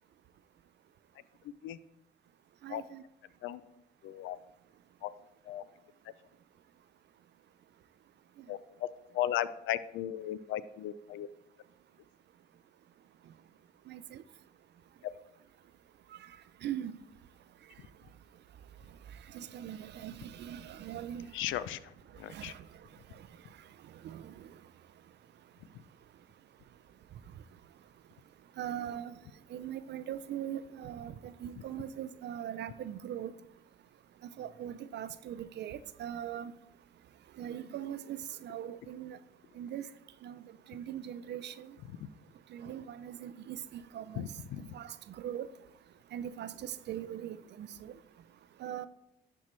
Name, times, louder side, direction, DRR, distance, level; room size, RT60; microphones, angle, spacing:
voice 1, 1.4-1.8 2.7-2.8 3.4-3.6 4.0-4.4 5.0-5.1 5.4-5.6 8.5-8.9 9.1-11.3 21.3-22.5 25.7-25.8 42.0-42.1 44.1-44.7, left 12 dB, 85° left, 0.4 m, -36 dB
voice 2, 2.6-3.0 13.9-14.0 16.6-16.9 19.3-21.3 22.3-22.5 24.0-24.2 28.6-29.1 29.5-33.3 34.4-36.5 37.4-39.2 39.6-39.8 40.2-40.4 40.7-41.7 42.5-43.6 43.9-44.2 44.7-44.9 45.2-45.5 46.1-47.9 48.6-48.9, right 10 dB, 60° right, 0.4 m, -40 dB
11.5 x 4.3 x 3.2 m
cardioid pair, 90°, 20 cm